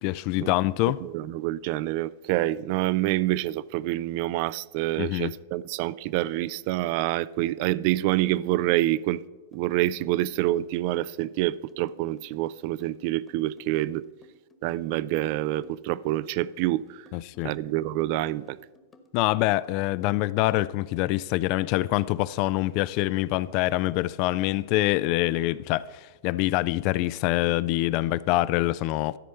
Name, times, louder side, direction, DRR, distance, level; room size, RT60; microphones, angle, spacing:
voice 1, 0.0-1.0 5.0-5.3 17.1-17.5 19.1-29.2, left 17 dB, 50° left, 0.3 m, -25 dB
voice 2, 1.0-9.2 9.5-14.1 14.6-17.0 17.4-18.6, right 15 dB, 50° right, 0.3 m, -27 dB
sound 1, 9.5-20.0, left 2 dB, 20° left, 1.2 m, -56 dB
12.5 x 4.3 x 6.6 m
hypercardioid pair, 105°, 0 cm